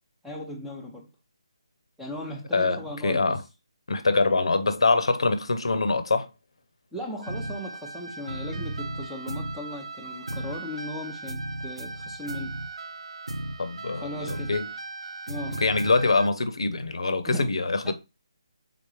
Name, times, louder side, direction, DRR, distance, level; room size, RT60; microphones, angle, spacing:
voice 1, 0.2-1.1 2.0-3.4 6.9-12.6 13.9-14.6 15.3-15.6 17.2-17.5 17.8-17.9, left 1 dB, ahead, 0.6 m, -37 dB
voice 2, 2.5-3.4 3.9-6.3 13.6-14.7 15.6-17.9, left 3 dB, 70° left, 0.7 m, -24 dB
sound 1, 7.2-16.3, right 2 dB, 80° right, 0.6 m, -36 dB
3.7 x 3.5 x 3.2 m
figure-of-eight pair, 160°, 3 cm